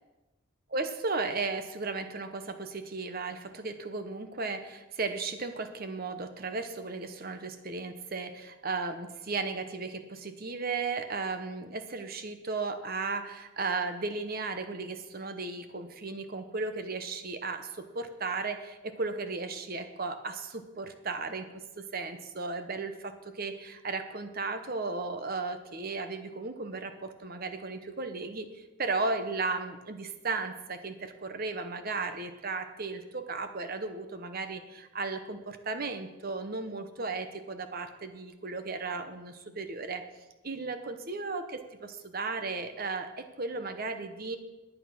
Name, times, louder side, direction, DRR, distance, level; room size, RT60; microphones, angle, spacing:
voice 1, 0.7-40.1 40.4-44.4, right 3 dB, 45° right, 8 dB, 1.0 m, -35 dB
11.0 x 9.1 x 6.0 m, 1.1 s
head